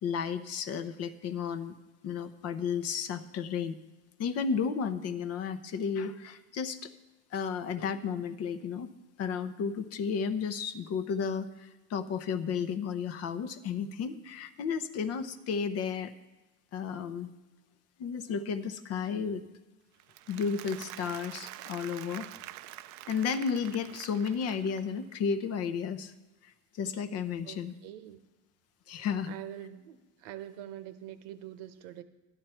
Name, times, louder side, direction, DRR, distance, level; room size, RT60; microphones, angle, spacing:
voice 1, 0.0-1.8 2.0-3.8 4.2-6.9 7.3-8.9 9.2-16.1 16.7-17.3 18.0-19.4 20.3-22.3 23.1-26.1 26.4-27.7 28.9-29.3, left 6 dB, 40° left, 12 dB, 0.7 m, -33 dB
Applause, 20.0-25.0, right 15 dB, 50° right, 0.5 m, -46 dB
voice 2, 27.4-28.2 29.3-32.0, right 12 dB, 70° right, 11 dB, 1.0 m, -44 dB
12.0 x 10.0 x 4.4 m, 1.1 s
supercardioid pair, 130°, 38 cm